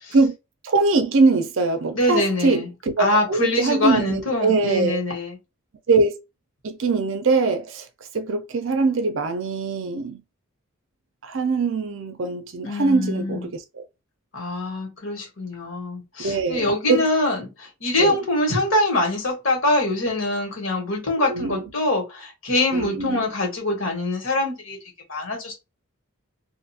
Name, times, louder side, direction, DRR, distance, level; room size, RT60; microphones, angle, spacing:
voice 1, 0.6-5.0 5.9-6.2 6.6-7.9 8.1-10.2 11.2-13.8 16.2-17.1 18.0-18.2 21.3-21.6 22.7-23.2, right 3 dB, 60° right, 0.5 m, -22 dB
voice 2, 1.9-2.7 3.0-5.4 12.6-13.5 14.3-24.8 25.1-25.5, left 2 dB, 65° left, 1.4 m, -24 dB
2.6 x 2.4 x 2.7 m
head